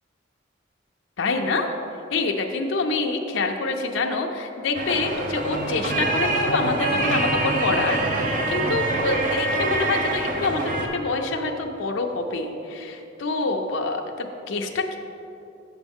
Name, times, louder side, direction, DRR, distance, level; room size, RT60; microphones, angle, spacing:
voice 1, 1.2-1.7 2.1-15.0, left 3 dB, 75° left, 3 dB, 0.5 m, -26 dB
sound 1, 4.7-10.9, right 2 dB, 45° right, 0.7 m, -25 dB
7.9 x 6.1 x 3.6 m, 2.8 s
head